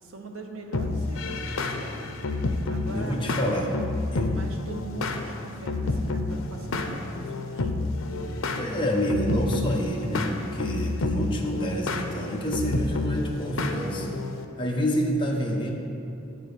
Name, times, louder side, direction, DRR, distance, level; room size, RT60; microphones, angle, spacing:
voice 1, 0.0-2.1 2.7-3.7 4.3-7.7, right 2 dB, 80° right, 3 dB, 0.8 m, -41 dB
sound 1, 0.7-14.4, left 2 dB, 80° left, 0.6 m, -30 dB
voice 2, 2.9-3.7 4.1-4.4 8.6-14.2 14.6-15.7, equal, 25° left, -1 dB, 0.7 m, -28 dB
9.0 x 3.9 x 6.7 m, 2.6 s
head